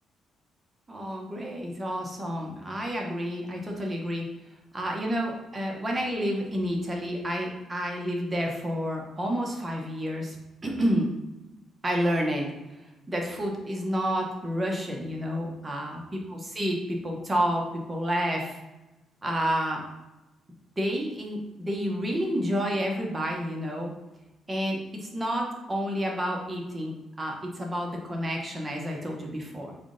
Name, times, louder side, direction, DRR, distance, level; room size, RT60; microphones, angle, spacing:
voice 1, 0.9-4.3 4.7-10.4 10.6-11.1 11.8-12.8 13.1-18.6 19.2-19.8 20.8-23.9 24.5-29.7, equal, 20° right, 0 dB, 0.9 m, -30 dB
3.6 x 2.4 x 3.8 m, 1.0 s
cardioid pair, 90°, 0 cm